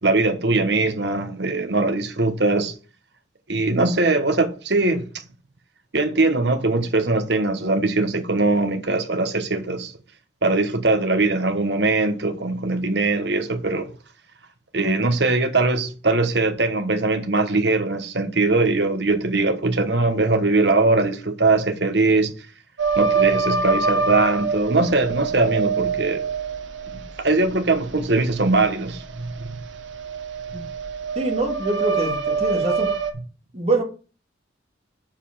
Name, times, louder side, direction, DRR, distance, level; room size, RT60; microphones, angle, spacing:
voice 1, 0.0-2.7 3.5-5.1 5.9-9.9 10.4-13.9 14.7-22.3 22.9-26.2 26.9-29.6, right 3 dB, 60° right, 1.3 m, -21 dB
sound 1, 22.8-33.1, right 5 dB, 85° right, 1.3 m, -25 dB
voice 2, 31.2-32.9 33.5-33.8, right 2 dB, 35° right, 2.1 m, -24 dB
6.8 x 5.4 x 7.3 m
head